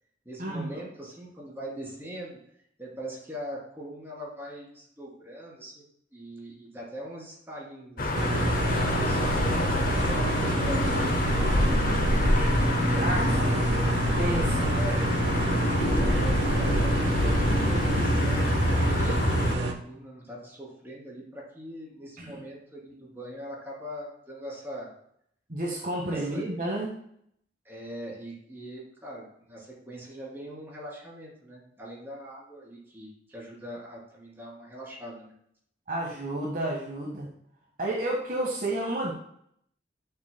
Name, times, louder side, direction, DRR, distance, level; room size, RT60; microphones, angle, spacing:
voice 1, 0.2-2.4 2.8-5.8 6.1-8.3 8.6-9.7 10.1-11.9 12.2-13.6 14.7-15.0 15.8-24.9 26.0-26.5 27.6-35.3, equal, 15° right, -4 dB, 3.1 m, -41 dB
sound 1, 8.0-19.6, left 1 dB, 50° left, 0.9 m, -26 dB
sound 2, 8.1-19.7, right 2 dB, 85° right, 1.0 m, -28 dB
voice 2, 13.0-13.7 14.1-14.8 22.2-22.4 25.5-26.9 35.9-37.3 37.8-39.1, right 1 dB, 50° right, -1 dB, 1.5 m, -31 dB
11.5 x 6.7 x 2.2 m, 0.69 s
head